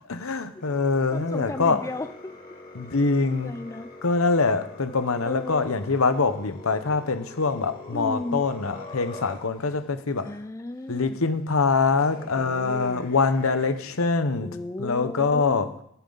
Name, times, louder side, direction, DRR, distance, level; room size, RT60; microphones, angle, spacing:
voice 1, 0.1-1.8 2.7-3.6 4.0-10.3 10.9-15.7, left 4 dB, 70° left, 0.9 m, -24 dB
sound 1, 0.6-9.7 10.1-10.4 11.4-11.5 12.0-14.0, left 2 dB, 40° left, 2.7 m, -45 dB
voice 2, 1.1-2.4 3.4-3.9 5.2-5.7 7.9-8.5 10.2-11.2 12.3-13.1 14.4-15.8, left 2 dB, 15° left, 0.4 m, -35 dB
14.0 x 8.9 x 4.0 m
head